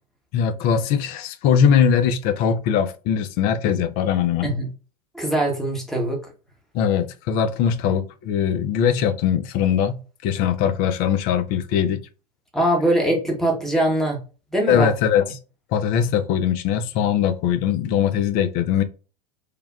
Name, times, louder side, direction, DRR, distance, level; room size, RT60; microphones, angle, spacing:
voice 1, 0.3-4.5 6.7-9.9 10.2-12.0 14.7-15.4 15.7-18.8, left 8 dB, 45° left, 0.4 m, -21 dB
voice 2, 5.1-6.2 12.5-14.2 14.5-14.9, right 1 dB, ahead, 0.9 m, -22 dB
3.2 x 2.2 x 2.3 m
hypercardioid pair, 90°, 21 cm